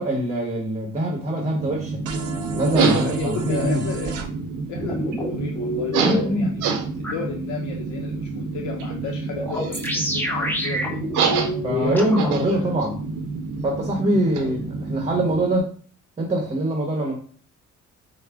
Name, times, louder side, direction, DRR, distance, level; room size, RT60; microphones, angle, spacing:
voice 1, 0.0-2.0 2.5-3.9 6.0-6.5 11.6-13.0 13.6-15.7 16.2-17.2, right 1 dB, 20° right, 1 dB, 0.9 m, -23 dB
sound 1, 1.4-15.6, right 4 dB, 85° right, 0.6 m, -28 dB
sound 2, 2.1-4.3, right 4 dB, 55° right, 0.7 m, -32 dB
voice 2, 2.9-4.2 4.7-11.1 11.7-12.2 12.5-12.7 14.4-14.5 16.9-17.2, left 5 dB, 75° left, 2 dB, 0.6 m, -34 dB
sound 3, 4.8-6.2 7.0-7.1 9.4-12.3, left 1 dB, 5° left, 0.8 m, -27 dB
4.7 x 2.1 x 3.4 m, 0.43 s
cardioid pair, 90°, 30 cm